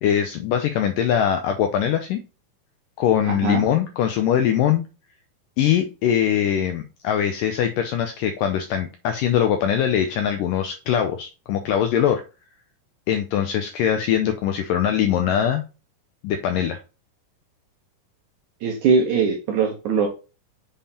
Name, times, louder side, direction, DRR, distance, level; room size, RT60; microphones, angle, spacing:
voice 1, 0.0-2.2 3.0-4.8 5.6-12.2 13.1-15.6 16.2-16.8, left 9 dB, 85° left, 6 dB, 2.0 m, -22 dB
voice 2, 3.3-3.6 18.6-20.1, right 5 dB, 65° right, 2 dB, 2.0 m, -21 dB
7.4 x 3.5 x 4.2 m, 0.31 s
omnidirectional pair, 4.6 m